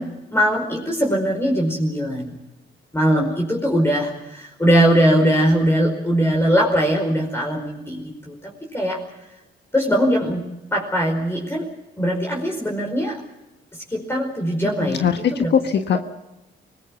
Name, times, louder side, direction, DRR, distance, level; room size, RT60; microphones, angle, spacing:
voice 1, 0.0-2.4 2.9-9.0 9.7-10.5 10.7-11.7 12.0-13.2 13.9-15.0 15.3-15.5, equal, 10° left, 0 dB, 5.0 m, -21 dB
voice 2, 14.8-16.0, left 7 dB, 60° left, 7 dB, 1.5 m, -20 dB
24.5 x 19.5 x 7.2 m, 0.93 s
cardioid pair, 90°, 20 cm